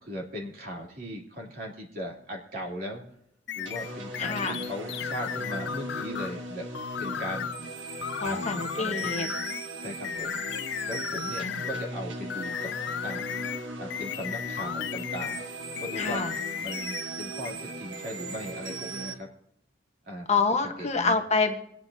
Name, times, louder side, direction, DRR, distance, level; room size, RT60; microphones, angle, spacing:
voice 1, 0.0-3.0 3.5-6.6 7.0-7.5 8.2-9.4 9.8-10.4 10.9-12.7 13.0-13.2 13.8-15.4 15.8-16.2 16.6-19.3 20.1-20.3 20.8-21.2, equal, 50° right, -2 dB, 2.8 m, -38 dB
sound 1, 3.5-6.4 6.7-7.6 8.0-9.7 10.0-11.9 12.3-15.5 15.8-17.1 17.4-17.5, left 8 dB, 65° left, 0.4 m, -35 dB
sound 2, 3.7-19.1, right 1 dB, 90° right, 1.3 m, -38 dB
voice 2, 4.2-4.6 8.2-9.3 11.4-11.6 16.0-16.3 20.3-21.5, left 4 dB, 35° left, 4 dB, 1.2 m, -27 dB
26.0 x 9.1 x 2.8 m, 0.77 s
head